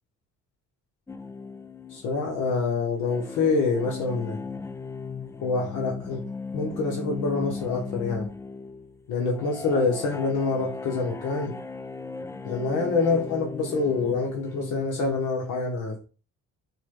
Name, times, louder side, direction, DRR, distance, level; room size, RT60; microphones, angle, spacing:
sound 1, 1.1-15.2, left 4 dB, 10° left, 0.3 m, -37 dB
voice 1, 1.9-4.4 5.4-6.2 6.5-8.3 9.1-11.6 12.4-16.0, left 4 dB, 80° left, -1 dB, 1.2 m, -26 dB
5.9 x 2.4 x 3.8 m, 0.34 s
cardioid pair, 90°, 30 cm